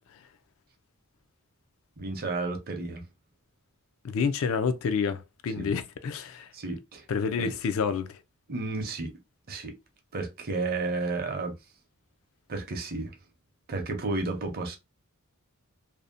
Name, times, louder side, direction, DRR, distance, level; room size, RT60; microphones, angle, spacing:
voice 1, 2.0-3.0 5.6-5.7 6.5-7.1 7.4-7.5 8.5-9.1 9.5-9.8 10.1-11.5 12.5-13.1 13.7-14.8, right 3 dB, 45° right, 0.6 m, -32 dB
voice 2, 4.0-6.5 7.1-8.2, left 5 dB, 65° left, 0.4 m, -28 dB
2.6 x 2.0 x 2.4 m
head